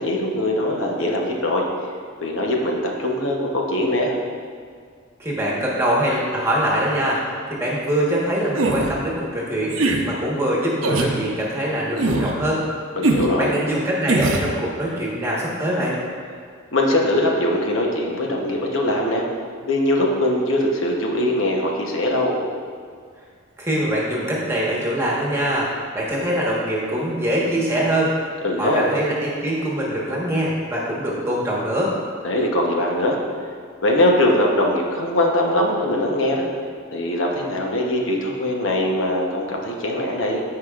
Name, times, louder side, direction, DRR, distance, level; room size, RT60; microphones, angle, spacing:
voice 1, 0.0-1.6 2.2-4.1 13.0-13.5 16.7-19.2 19.6-22.3 28.4-28.9 32.2-33.2 33.8-36.5 36.9-40.4, left 1 dB, 70° left, 0 dB, 0.9 m, -21 dB
voice 2, 5.2-9.8 10.0-12.6 13.4-15.9 23.6-25.7 25.9-28.1 28.6-31.9, right 1 dB, 15° right, -5 dB, 1.3 m, -23 dB
sound 1, 8.6-8.9 9.7-10.0 10.8-11.1 12.0-12.3 13.0-13.3 14.1-14.5, right 2 dB, 80° right, 0.7 m, -20 dB
14.5 x 4.8 x 2.4 m, 2.1 s
head